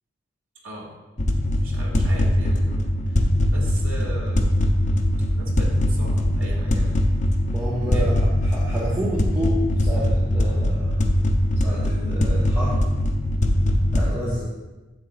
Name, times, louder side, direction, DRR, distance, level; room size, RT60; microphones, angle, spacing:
sound 1, 1.2-14.2, left 1 dB, 35° left, 0.7 m, -21 dB
voice 1, 1.6-2.9 3.5-4.7 5.3-7.0 7.8-8.1, equal, 90° right, -3 dB, 2.3 m, -38 dB
voice 2, 7.5-11.1 11.6-12.8 13.9-14.5, equal, 10° right, -9 dB, 1.2 m, -30 dB
9.7 x 7.6 x 2.5 m, 1.1 s
head